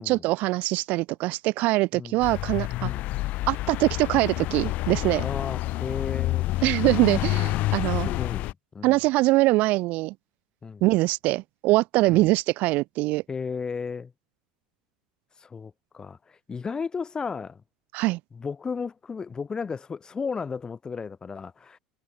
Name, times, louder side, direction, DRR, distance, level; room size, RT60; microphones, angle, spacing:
voice 1, 0.0-2.9 3.5-5.3 6.6-8.1 8.8-10.1 10.8-13.2 17.9-18.2, right 20 dB, 50° right, 0.9 m, -23 dB
sound 1, 2.2-8.5, left 17 dB, 45° left, 0.9 m, -28 dB
voice 2, 5.2-6.5 8.0-9.0 10.6-10.8 12.1-12.3 13.3-14.1 15.4-17.6 18.3-21.8, left 5 dB, 20° left, 4.4 m, -34 dB
figure-of-eight pair, 75°, 3 cm